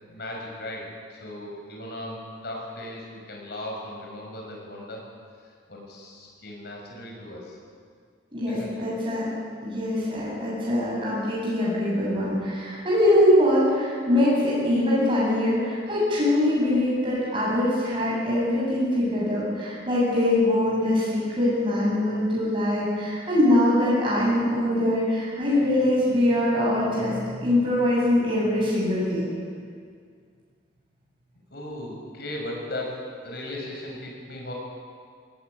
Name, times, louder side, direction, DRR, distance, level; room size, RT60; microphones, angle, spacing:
voice 1, 0.1-5.1 5.4-7.6 8.5-8.8 31.5-34.5, left 1 dB, 55° left, -1 dB, 6.2 m, -37 dB
voice 2, 8.3-9.3 9.6-29.3, left 1 dB, 25° right, -7 dB, 8.0 m, -23 dB
18.0 x 18.0 x 10.0 m, 2.1 s
head